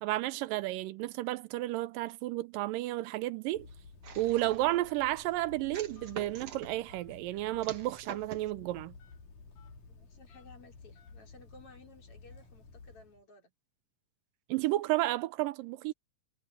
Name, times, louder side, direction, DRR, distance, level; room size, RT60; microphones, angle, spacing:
voice 1, 0.0-3.7 4.2-8.9 14.5-15.9, right 17 dB, 85° right, 2.3 m, -32 dB
Telephone, 3.5-13.2, left 4 dB, 65° left, 5.0 m, -53 dB
sound 1, 4.0-4.8 5.7-6.7 7.6-8.5, right 7 dB, 50° right, 2.7 m, -45 dB
voice 2, 9.8-13.5, left 3 dB, 45° left, 4.6 m, -57 dB
omnidirectional pair, 3.8 m